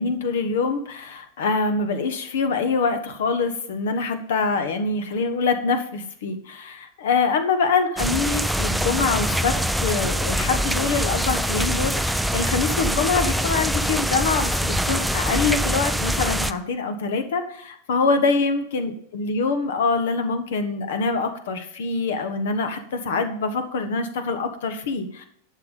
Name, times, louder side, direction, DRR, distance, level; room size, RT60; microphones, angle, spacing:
voice 1, 0.0-25.2, left 4 dB, 60° left, 9 dB, 1.4 m, -25 dB
sound 1, 8.0-16.5, equal, ahead, 0.5 m, -24 dB
11.5 x 6.8 x 5.5 m, 0.66 s
figure-of-eight pair, 90°, 0 cm